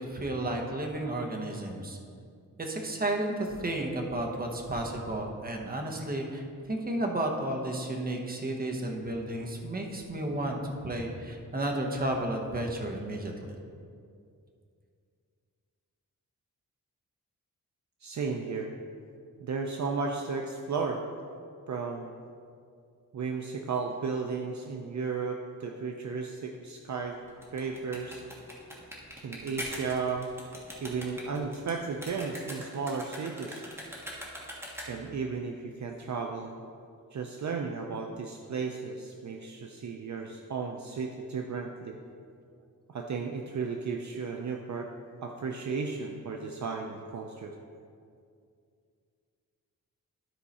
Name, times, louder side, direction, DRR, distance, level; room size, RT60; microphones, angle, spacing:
voice 1, 0.0-2.0 2.6-13.6, right 1 dB, 25° right, 1 dB, 1.0 m, -32 dB
voice 2, 18.0-18.7 19.4-21.0 21.7-22.1 23.1-27.2 27.5-28.2 29.2-30.3 30.8-33.6 34.9-36.5 37.1-42.0 42.9-44.9 45.2-47.5, right 5 dB, 55° right, 2 dB, 0.6 m, -34 dB
sound 1, 27.3-35.2, equal, 5° right, 1.5 m, -42 dB
12.5 x 4.7 x 4.2 m, 2.3 s
wide cardioid pair, 145°, 34 cm